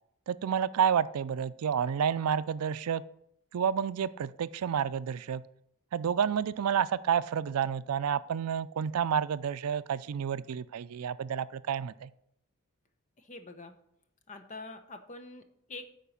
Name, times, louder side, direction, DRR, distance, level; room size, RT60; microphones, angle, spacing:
voice 1, 0.3-3.0 3.5-5.4 5.9-12.1, right 8 dB, 90° right, 15 dB, 0.4 m, -30 dB
voice 2, 13.2-13.8 14.3-15.8, left 2 dB, 35° left, 7 dB, 0.8 m, -45 dB
9.0 x 4.6 x 7.0 m, 0.74 s
head